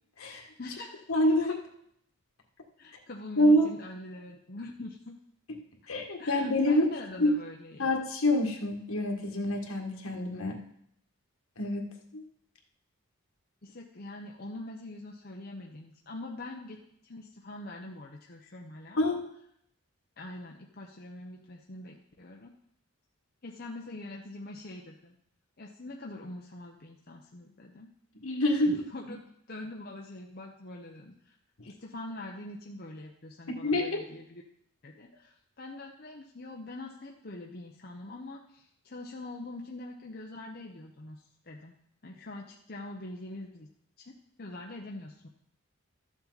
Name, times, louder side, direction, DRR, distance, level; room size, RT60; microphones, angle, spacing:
voice 1, 0.6-1.0 2.8-5.2 6.2-7.9 13.6-16.8 17.0-19.2 20.2-22.5 23.4-25.1 25.6-27.9 28.5-29.2 29.5-31.3 31.7-34.4 34.8-41.7 42.0-43.7 44.0-45.3, left 2 dB, 45° left, 0 dB, 0.8 m, -44 dB
voice 2, 1.1-1.6 3.4-3.7 5.9-6.9 7.2-7.3 7.8-10.6 11.6-11.9 12.1-12.2 19.0-19.3 28.2-28.7 33.6-34.0, left 1 dB, 75° left, 1 dB, 1.8 m, -26 dB
13.0 x 7.2 x 4.0 m, 0.71 s
head